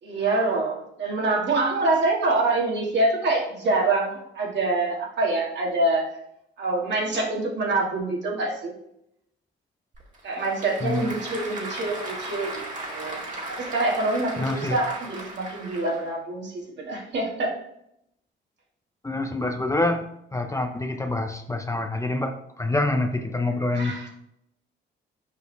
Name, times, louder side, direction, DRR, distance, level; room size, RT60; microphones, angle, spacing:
voice 1, 0.0-6.1 6.6-8.7 10.2-12.5 12.9-13.2 13.5-17.5 23.8-24.1, right 2 dB, 65° right, -2 dB, 2.2 m, -25 dB
Applause / Crowd, 9.9-16.1, right 2 dB, 40° right, 2.1 m, -36 dB
voice 2, 10.8-11.4 14.4-14.8 19.0-20.0 20.3-24.1, left 2 dB, 15° left, 5 dB, 0.7 m, -26 dB
6.6 x 5.0 x 3.4 m, 0.76 s
cardioid pair, 90°, 20 cm